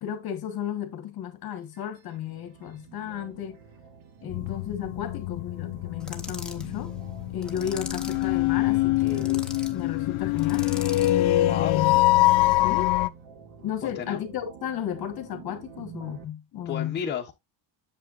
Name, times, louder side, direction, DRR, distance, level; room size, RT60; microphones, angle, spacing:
voice 1, 0.0-3.6 4.2-7.0 7.3-11.9 12.6-12.9 13.6-17.0, left 10 dB, 50° left, 1.3 m, -34 dB
sound 1, 1.6-16.2, right 8 dB, 70° right, 1.6 m, -48 dB
sound 2, 4.3-13.1, left 18 dB, 65° left, 0.6 m, -24 dB
sound 3, 6.0-6.7 7.4-8.3 9.0-9.7 10.4-11.2, left 2 dB, ahead, 0.7 m, -40 dB
voice 2, 11.4-11.8 13.8-14.2 16.6-17.3, left 7 dB, 20° left, 1.2 m, -32 dB
8.1 x 7.0 x 2.4 m
cardioid pair, 160°, 48 cm